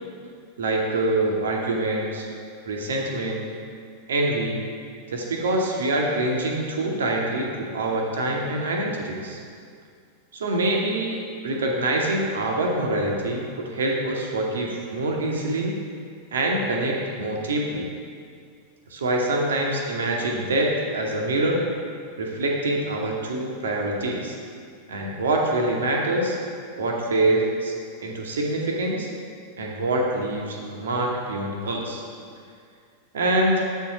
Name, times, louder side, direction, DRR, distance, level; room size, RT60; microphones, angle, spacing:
voice 1, 0.6-2.3 2.7-3.4 4.1-4.6 5.1-9.4 10.3-15.8 16.3-17.9 18.9-21.6 22.2-24.4 24.9-26.4 26.8-27.7 28.0-29.1 29.6-32.0 33.1-33.7, right 1 dB, 65° right, 0 dB, 1.0 m, -25 dB
7.3 x 4.6 x 6.0 m, 2.2 s
figure-of-eight pair, 90°, 0 cm